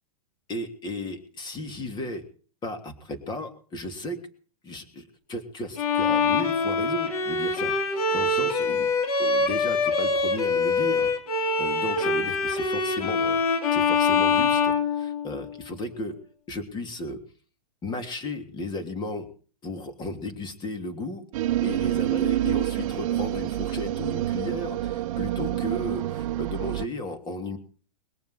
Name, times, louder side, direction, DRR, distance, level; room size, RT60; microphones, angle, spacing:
voice 1, 0.5-2.2 2.6-4.3 4.6-11.1 11.4-13.4 13.7-16.1 16.5-17.2 17.8-19.3 19.6-21.2 21.6-27.6, left 1 dB, 25° left, 7 dB, 3.0 m, -34 dB
Bowed string instrument, 5.8-15.6, left 4 dB, 75° left, 3.3 m, -24 dB
sound 1, 21.3-26.9, right 13 dB, 60° right, 0.7 m, -27 dB
21.0 x 7.2 x 8.0 m, 0.42 s
hypercardioid pair, 130°, 19 cm